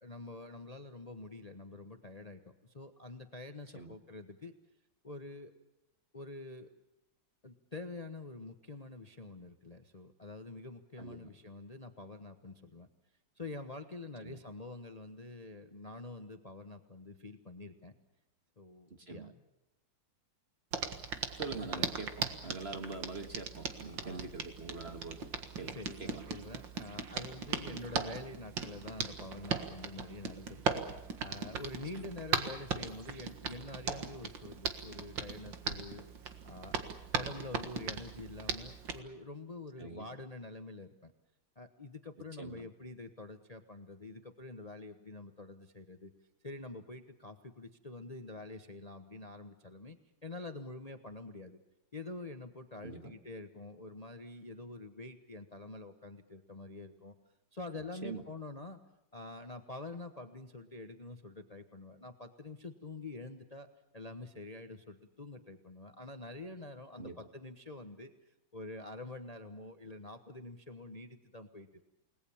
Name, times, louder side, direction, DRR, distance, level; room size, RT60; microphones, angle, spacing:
voice 1, 0.0-4.5 5.0-5.5 6.1-6.7 7.4-12.9 13.4-17.9 18.6-19.3 21.6-21.9 23.7-24.3 25.7-36.0 36.4-36.8 37.1-41.1 41.6-46.1 46.4-51.6 51.9-57.1 57.5-58.8 59.1-63.7 63.9-71.7, left 2 dB, 25° left, 8 dB, 1.0 m, -47 dB
voice 2, 11.0-11.3 14.2-14.4 18.9-19.3 21.3-22.1 22.4-25.2 25.6-26.2 27.7-27.8 32.0-32.1 39.8-40.1 42.4-42.6 52.8-53.1 58.0-58.2 67.0-67.1, right 4 dB, 35° right, 7 dB, 1.7 m, -44 dB
Hands, 20.7-39.0, right 6 dB, 70° right, 2.4 m, -39 dB
29.5 x 19.5 x 7.2 m, 0.91 s
omnidirectional pair, 2.1 m